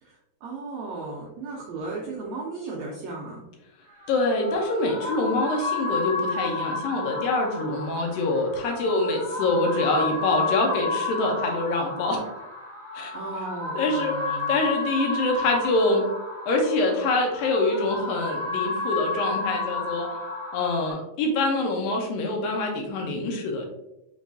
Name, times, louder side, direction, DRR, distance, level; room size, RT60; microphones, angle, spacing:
voice 1, 0.0-3.4 8.8-9.2 13.1-14.6, right 3 dB, 85° right, -3 dB, 1.6 m, -36 dB
sound 1, 3.9-20.9, left 3 dB, 60° right, 1.6 m, -31 dB
voice 2, 4.1-12.2 12.9-13.1 13.8-14.1 14.5-16.0 16.5-20.2 20.5-23.7, left 2 dB, 80° left, 2 dB, 2.5 m, -25 dB
6.3 x 3.1 x 2.6 m, 0.89 s
omnidirectional pair, 4.1 m